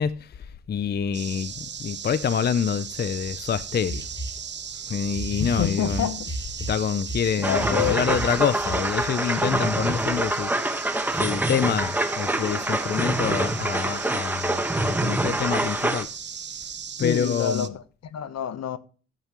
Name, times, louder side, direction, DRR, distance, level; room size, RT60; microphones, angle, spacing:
voice 1, 0.0-4.1 4.9-6.1 6.7-10.5 10.9-16.1 17.0-17.7, left 7 dB, 35° left, 0.5 m, -27 dB
sound 1, 1.1-17.7, right 7 dB, 35° right, 0.8 m, -37 dB
sound 2, 3.3-3.4 3.9-4.4 5.1-7.2 7.6-9.1, equal, 15° left, 1.7 m, -33 dB
voice 2, 5.4-6.3 7.4-8.0 17.0-18.8, left 9 dB, 60° left, 1.0 m, -28 dB
sound 3, 7.4-16.0, right 1 dB, 5° right, 1.2 m, -26 dB
12.5 x 8.0 x 3.0 m
cardioid pair, 90°, 30 cm